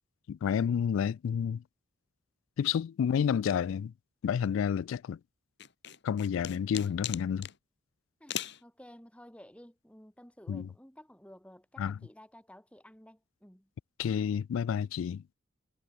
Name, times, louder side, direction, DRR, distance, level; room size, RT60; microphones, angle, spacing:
voice 1, 0.3-1.6 2.6-3.9 4.2-5.2 6.0-7.5 10.5-10.7 11.8-11.9 14.0-15.2, left 7 dB, 75° left, 0.3 m, -30 dB
sound 1, 5.6-7.6 8.3-8.6, left 10 dB, 60° left, 2.0 m, -38 dB
voice 2, 8.2-13.7, equal, 5° left, 3.4 m, -54 dB
head